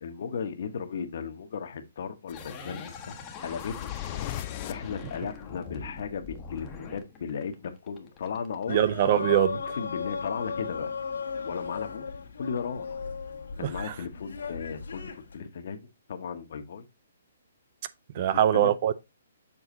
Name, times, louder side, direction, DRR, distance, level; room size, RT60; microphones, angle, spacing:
voice 1, 0.0-3.9 4.7-8.8 9.7-10.9 11.4-12.1 12.4-13.0 13.6-16.8 18.2-18.7, left 6 dB, 60° left, 1.3 m, -36 dB
sound 1, 2.3-5.7, left 13 dB, 35° left, 0.4 m, -40 dB
sound 2, 2.3-8.6, left 5 dB, 20° left, 1.1 m, -43 dB
sound 3, 8.7-15.3, left 5 dB, 85° left, 1.6 m, -36 dB
voice 2, 8.7-9.6 18.2-18.9, right 11 dB, 40° right, 0.5 m, -22 dB
7.1 x 3.9 x 3.8 m
hypercardioid pair, 155°, 0 cm